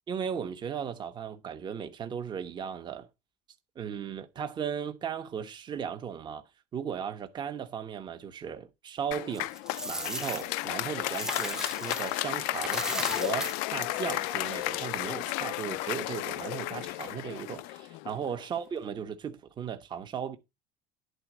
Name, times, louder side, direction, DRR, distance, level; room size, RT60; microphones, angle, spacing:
voice 1, 0.1-3.1 3.7-6.4 6.7-9.5 9.9-20.4, right 7 dB, 30° right, 1.1 m, -36 dB
Applause, 9.1-18.4, left 18 dB, 75° left, 0.5 m, -33 dB
Coin (dropping), 9.3-12.2 12.5-14.8, right 1 dB, 5° right, 0.8 m, -37 dB
10.5 x 4.0 x 6.1 m
cardioid pair, 135°, 15 cm